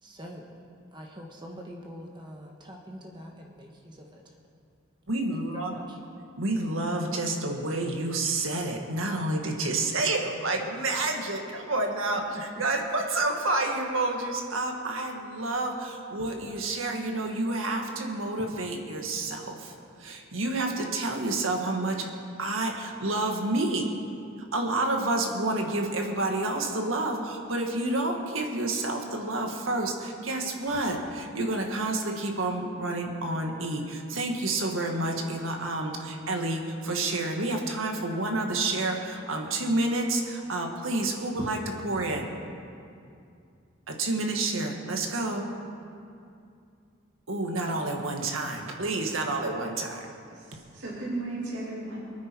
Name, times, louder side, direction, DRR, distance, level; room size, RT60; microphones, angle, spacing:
voice 1, 0.0-0.6 0.9-4.3 5.3-6.0 12.3-12.6, equal, 25° right, 0 dB, 1.2 m, -44 dB
voice 2, 5.1-5.7 6.4-19.7 20.0-22.1 22.4-23.9 24.5-42.3 43.9-45.5 47.3-50.0, right 2 dB, 85° right, 2 dB, 1.8 m, -29 dB
voice 3, 50.3-52.0, right 2 dB, 65° right, -6 dB, 2.7 m, -35 dB
23.5 x 9.5 x 4.6 m, 2.5 s
head